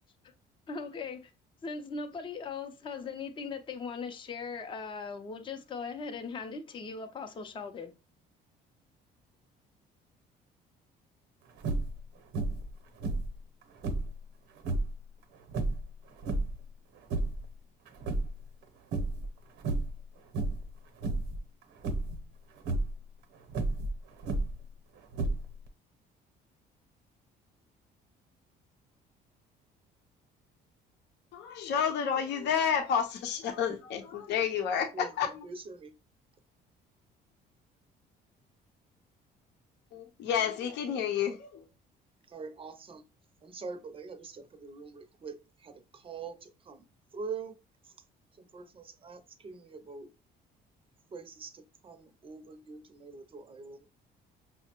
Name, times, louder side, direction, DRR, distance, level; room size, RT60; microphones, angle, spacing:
voice 1, 0.7-1.3 1.6-7.9, left 5 dB, 30° left, 0.5 m, -39 dB
sound 1, 11.6-12.0 12.3-12.7 13.0-14.2 14.6-15.0 15.5-16.6 17.0-17.5 17.9-18.6 18.9-19.3 19.6-20.0 20.3-20.7 21.0-21.4 21.8-22.2 22.6-22.9 23.5-24.7 25.1-25.7, right 2 dB, 75° right, 0.8 m, -32 dB
voice 2, 31.3-35.5 39.9-41.6, left 7 dB, 75° left, 0.7 m, -30 dB
voice 3, 35.4-35.9 42.3-43.0 43.4-46.8 47.1-47.6 48.4-50.1 51.1-53.9, right 4 dB, 30° right, 0.6 m, -44 dB
5.6 x 2.1 x 2.9 m
cardioid pair, 110°, 18 cm